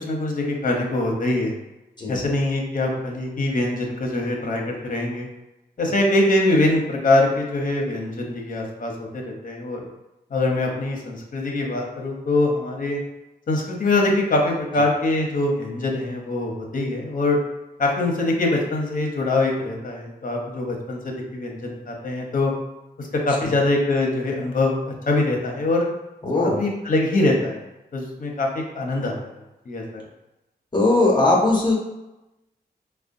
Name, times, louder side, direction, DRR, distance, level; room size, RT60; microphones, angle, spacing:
voice 1, 0.0-1.5 2.1-5.3 5.8-9.9 10.3-13.0 13.5-17.4 17.8-22.5 23.0-25.9 26.3-27.6 27.9-29.1 29.7-30.0, left 2 dB, 50° left, 0 dB, 0.8 m, -23 dB
voice 2, 26.2-26.6 30.7-31.7, left 2 dB, 25° left, -3 dB, 0.9 m, -19 dB
4.8 x 2.2 x 2.6 m, 0.98 s
wide cardioid pair, 100°, 17 cm